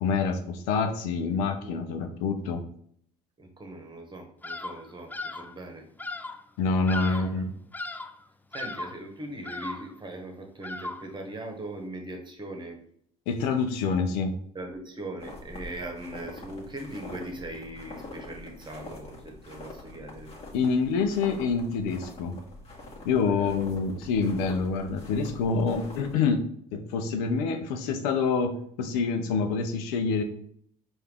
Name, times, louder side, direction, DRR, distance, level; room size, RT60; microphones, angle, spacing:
voice 1, 0.0-2.6 6.6-7.5 13.3-14.3 20.5-22.3 23.0-26.4 26.7-30.2, left 5 dB, 80° left, 5 dB, 0.7 m, -26 dB
voice 2, 3.4-5.8 7.0-7.5 8.5-12.8 14.5-20.3 23.2-24.0, right 1 dB, 25° right, 2 dB, 1.3 m, -40 dB
Bird vocalization bird call bird song, 4.4-4.8 5.1-5.5 6.0-6.4 6.9-7.4 7.7-8.2 8.5-9.0 9.4-10.0 10.6-11.2, left 2 dB, 10° left, 0.3 m, -37 dB
sound 1, 15.2-26.1, left 2 dB, 30° left, 1.6 m, -45 dB
4.7 x 2.7 x 3.6 m, 0.64 s
supercardioid pair, 75°, 19 cm